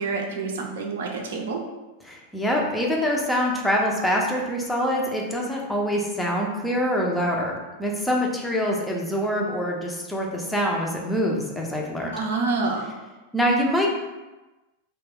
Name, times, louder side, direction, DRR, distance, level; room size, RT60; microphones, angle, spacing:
voice 1, 0.0-1.6 12.1-12.9, right 3 dB, 60° right, 1 dB, 0.5 m, -27 dB
voice 2, 2.0-12.1 13.3-13.9, equal, 5° left, -2 dB, 0.5 m, -25 dB
2.3 x 2.2 x 3.4 m, 1.1 s
figure-of-eight pair, 90°, 0 cm